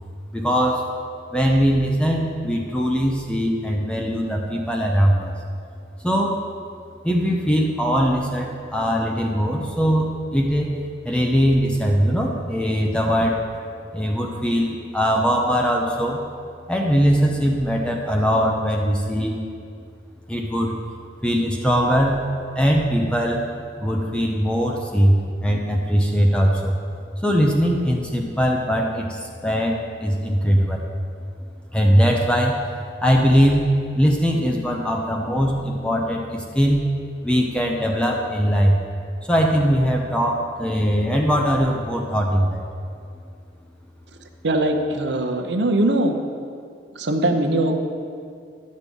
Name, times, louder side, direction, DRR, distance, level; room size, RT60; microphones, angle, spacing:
voice 1, 0.3-0.9 1.3-5.3 6.0-6.4 7.0-10.7 11.0-13.4 13.9-16.2 16.7-19.4 20.3-20.8 21.2-22.2 22.6-23.4 23.8-26.8 27.2-30.9 31.7-32.6 33.0-33.7 34.0-36.8 37.2-38.8 39.3-42.7, equal, 5° left, 0 dB, 0.7 m, -20 dB
voice 2, 44.4-46.2 46.9-47.8, right 1 dB, 75° right, 4 dB, 0.8 m, -21 dB
11.5 x 6.5 x 5.3 m, 2.3 s
head